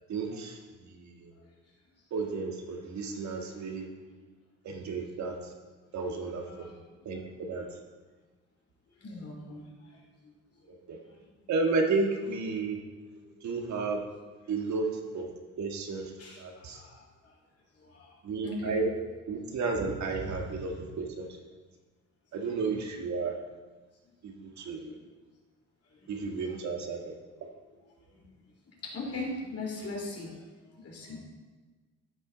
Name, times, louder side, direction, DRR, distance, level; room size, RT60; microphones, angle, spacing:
voice 1, 0.1-1.3 2.1-3.9 4.6-5.4 5.9-6.7 7.0-7.7 10.9-11.0 11.5-12.8 13.4-14.0 14.5-15.3 15.6-16.1 16.4-16.8 18.2-18.9 19.3-21.3 22.3-23.4 24.2-24.9 26.1-27.2, right 4 dB, 65° right, 2 dB, 1.7 m, -32 dB
voice 2, 6.2-6.8 7.1-7.2 9.0-10.8 11.1-11.4 13.2-13.3 16.2-17.4 17.7-18.8 24.6-25.0 25.9-26.6 28.1-28.3 28.7-31.2, left 2 dB, 50° left, -1 dB, 3.2 m, -42 dB
14.5 x 5.6 x 4.0 m, 1.3 s
cardioid pair, 90°, 30 cm